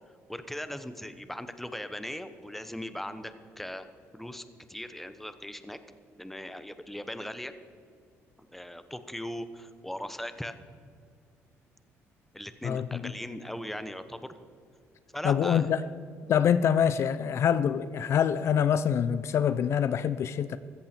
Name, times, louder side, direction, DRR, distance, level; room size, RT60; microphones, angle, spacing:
voice 1, 0.3-3.9 4.1-5.8 6.2-7.5 8.5-10.5 12.3-14.4 15.1-15.6, left 1 dB, 5° left, 11 dB, 0.9 m, -39 dB
voice 2, 12.6-13.1 15.2-15.8 16.3-20.6, left 8 dB, 60° left, 14 dB, 0.5 m, -25 dB
15.0 x 14.5 x 4.4 m, 2.2 s
cardioid pair, 100°, 5 cm